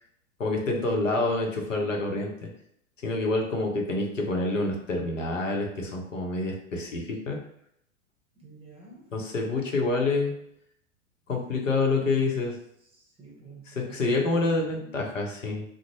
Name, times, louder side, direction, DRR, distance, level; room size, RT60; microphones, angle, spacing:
voice 1, 0.4-2.5 3.0-7.4 9.1-10.3 11.3-12.5 13.9-15.6, left 2 dB, 75° left, 1 dB, 0.8 m, -27 dB
voice 2, 8.3-9.2 11.3-12.5 12.8-15.0, right 3 dB, 15° right, -3 dB, 0.8 m, -49 dB
2.5 x 2.1 x 3.0 m, 0.72 s
figure-of-eight pair, 95°, 38 cm